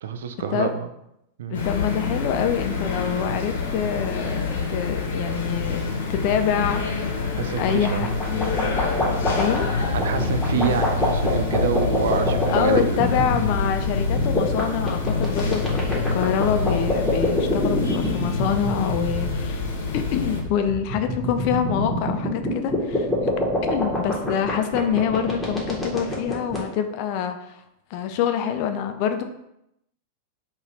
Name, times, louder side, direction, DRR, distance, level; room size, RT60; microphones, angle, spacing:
voice 1, 0.0-0.7 1.4-1.6 7.4-8.1 10.0-13.3 19.7-19.8 23.1-23.3, right 7 dB, 60° right, 9 dB, 0.3 m, -27 dB
sound 1, 1.5-20.4, left 4 dB, 60° left, 0.8 m, -26 dB
voice 2, 1.5-5.8 6.1-7.2 7.6-8.1 9.3-9.7 12.5-19.7 19.9-23.3 23.7-27.6 27.9-29.2, left 8 dB, 45° left, 7 dB, 0.4 m, -26 dB
sound 2, 7.7-26.6, left 1 dB, 5° left, 1.1 m, -26 dB
4.0 x 2.4 x 4.1 m, 0.82 s
figure-of-eight pair, 90°, 0 cm